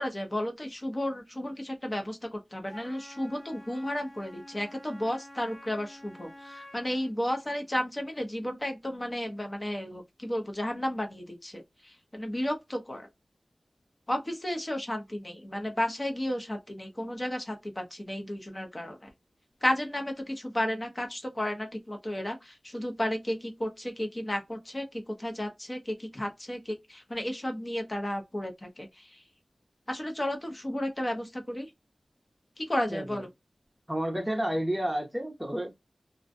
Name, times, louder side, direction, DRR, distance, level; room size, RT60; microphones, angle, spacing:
voice 1, 0.0-13.1 14.1-19.1 19.6-29.2 29.9-31.7 32.6-33.3, left 1 dB, 25° left, 0.6 m, -33 dB
Wind instrument woodwind instrument, 2.7-7.2, left 1 dB, 60° left, 1.1 m, -49 dB
voice 2, 32.9-33.2 33.9-35.7, right 1 dB, 10° right, 0.7 m, -30 dB
2.5 x 2.1 x 2.5 m
wide cardioid pair, 85°, 0 cm